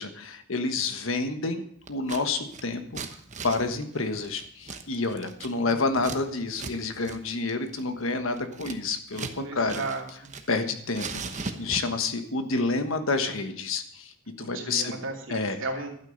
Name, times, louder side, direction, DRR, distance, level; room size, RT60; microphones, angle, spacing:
voice 1, 0.0-1.6 1.9-3.0 3.4-9.8 10.5-14.1 14.4-15.0 15.3-15.6, left 3 dB, 75° left, 8 dB, 1.4 m, -29 dB
Scissors, 1.9-2.2 2.5-6.2 6.5-6.7 7.0-7.2 7.5-9.4 9.7-10.6 10.9-12.0, right 4 dB, 35° right, 1.0 m, -38 dB
voice 2, 5.4-5.8 9.3-10.3 14.4-15.9, right 3 dB, 70° right, 1 dB, 2.8 m, -35 dB
12.0 x 9.1 x 6.5 m, 0.66 s
head